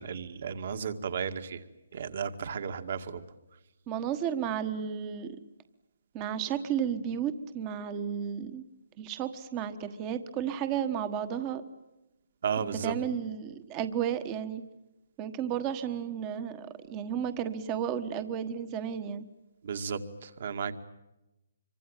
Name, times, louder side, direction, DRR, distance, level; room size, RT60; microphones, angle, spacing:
voice 1, 0.0-1.6 1.9-3.2 12.4-12.9 19.6-20.7, right 6 dB, 50° right, 9 dB, 2.2 m, -34 dB
voice 2, 3.9-5.4 6.1-8.6 9.0-11.6 12.8-14.6 15.2-19.3, right 8 dB, 20° right, 11 dB, 1.3 m, -33 dB
26.5 x 24.5 x 9.0 m, 0.96 s
hypercardioid pair, 170°, 0 cm